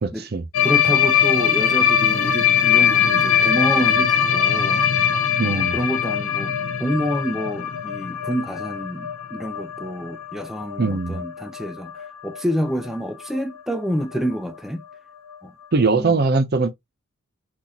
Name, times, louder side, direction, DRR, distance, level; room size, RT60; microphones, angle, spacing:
voice 1, 0.0-0.5 5.4-5.8 10.8-11.2 15.7-16.7, right 3 dB, 45° right, 0.6 m, -21 dB
sound 1, 0.5-12.4 12.7-12.9 13.2-13.4 13.7-13.8 14.1-14.2 15.3-15.4, left 8 dB, 70° left, 0.5 m, -21 dB
voice 2, 0.6-4.8 5.4-6.5 6.8-14.8 15.4-15.5 15.8-16.2, equal, ahead, 0.3 m, -28 dB
3.9 x 2.5 x 2.9 m
head